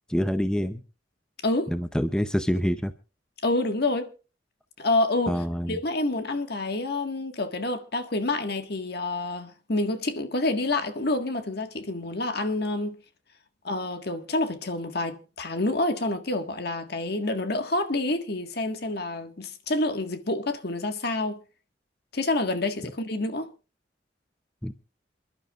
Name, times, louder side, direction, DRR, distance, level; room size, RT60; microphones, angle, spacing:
voice 1, 0.1-0.8 1.7-2.9 5.3-5.8 24.6-24.7, equal, 5° left, 0.6 m, -26 dB
voice 2, 3.4-4.1 4.8-5.4 5.7-13.0 13.6-21.4 22.1-23.5, left 2 dB, 55° left, 1.7 m, -28 dB
27.5 x 12.0 x 2.4 m
head